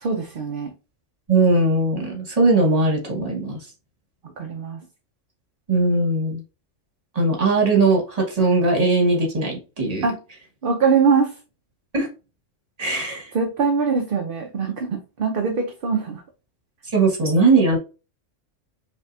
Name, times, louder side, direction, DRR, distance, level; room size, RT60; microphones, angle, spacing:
voice 1, 0.0-0.7 4.4-4.8 10.0-10.2 10.6-11.4 13.3-16.2, right 5 dB, 55° right, 3 dB, 0.7 m, -22 dB
voice 2, 1.3-3.6 5.7-6.4 7.1-10.1 11.9-12.1 12.8-13.3 16.9-17.8, right 3 dB, 30° right, 1 dB, 1.4 m, -19 dB
5.4 x 2.6 x 2.6 m, 0.30 s
omnidirectional pair, 1.3 m